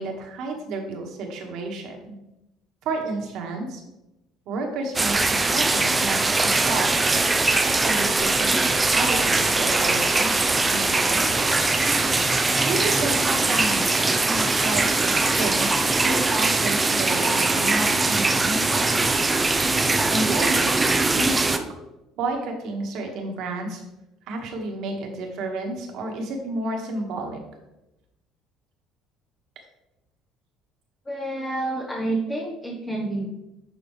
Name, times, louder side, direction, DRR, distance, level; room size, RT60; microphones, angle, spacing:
voice 1, 0.0-2.2 2.9-3.8 4.5-8.6 8.9-11.5 12.6-13.9 14.2-15.8 16.0-18.9 20.1-20.8 21.1-21.7 22.2-23.8 24.3-27.4, right 2 dB, 65° right, 2 dB, 1.8 m, -31 dB
sound 1, 4.9-21.6, right 3 dB, 15° right, 0.6 m, -21 dB
voice 2, 31.1-33.3, right 2 dB, 15° left, -1 dB, 1.1 m, -28 dB
11.5 x 4.4 x 3.3 m, 0.92 s
cardioid pair, 110°, 0 cm